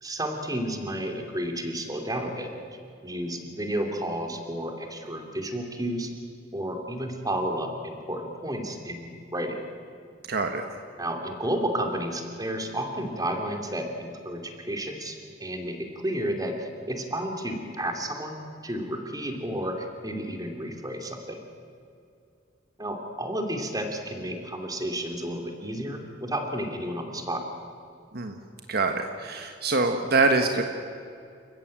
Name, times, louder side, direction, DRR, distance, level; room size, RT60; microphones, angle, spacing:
voice 1, 0.0-2.5 3.0-6.1 6.5-9.6 11.0-21.4 22.8-27.4, right 1 dB, 20° right, 4 dB, 2.8 m, -32 dB
voice 2, 10.3-10.7 28.1-28.3 28.7-30.6, right 3 dB, 55° right, 5 dB, 1.4 m, -24 dB
29.0 x 15.0 x 9.0 m, 2.5 s
head